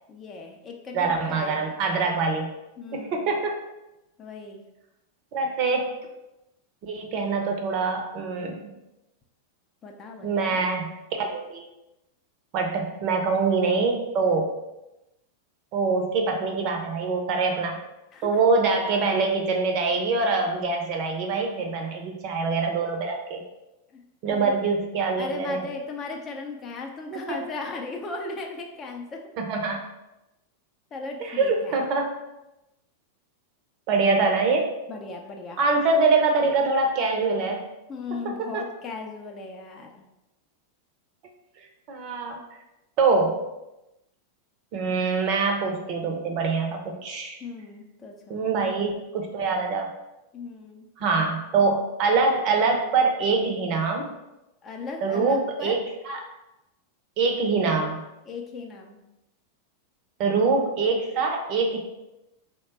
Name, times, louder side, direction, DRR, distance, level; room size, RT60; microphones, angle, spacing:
voice 1, 0.1-1.6 2.8-3.4 4.2-4.6 9.8-10.7 18.1-18.4 23.9-24.5 25.2-29.3 30.9-31.8 34.9-35.6 37.9-40.0 47.4-48.5 50.3-50.9 54.6-55.8 58.2-59.0, left 3 dB, 25° left, 1 dB, 0.5 m, -37 dB
voice 2, 0.9-2.5 2.9-3.6 5.3-5.9 6.8-8.7 10.2-10.9 11.2-11.6 12.5-14.5 15.7-17.8 18.2-23.4 24.2-25.7 27.1-27.4 29.4-29.8 31.2-32.1 33.9-34.7 35.6-37.6 41.9-42.4 43.0-43.4 44.7-47.4 48.3-49.9 51.0-54.1 55.0-56.2 57.2-58.0 60.2-61.8, right 4 dB, 40° right, 3 dB, 0.6 m, -24 dB
3.1 x 2.1 x 4.1 m, 0.93 s
figure-of-eight pair, 90°, 0 cm